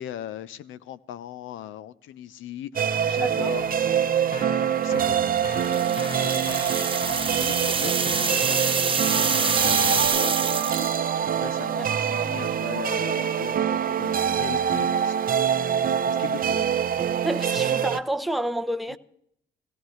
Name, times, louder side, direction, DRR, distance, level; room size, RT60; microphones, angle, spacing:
voice 1, 0.0-3.8 4.6-5.8 6.1-15.4 16.1-16.7 18.9-19.0, left 11 dB, 80° left, 0.7 m, -39 dB
sound 1, 2.8-18.0, right 8 dB, 45° right, 0.7 m, -25 dB
voice 2, 3.2-3.5 11.8-11.9 17.2-19.0, right 1 dB, ahead, 0.7 m, -29 dB
Keyboard (musical), 3.5-10.1, left 1 dB, 45° left, 4.2 m, -38 dB
sound 2, 5.5-11.1, right 5 dB, 25° right, 1.0 m, -26 dB
17.5 x 17.0 x 3.2 m
cardioid pair, 90°, 20 cm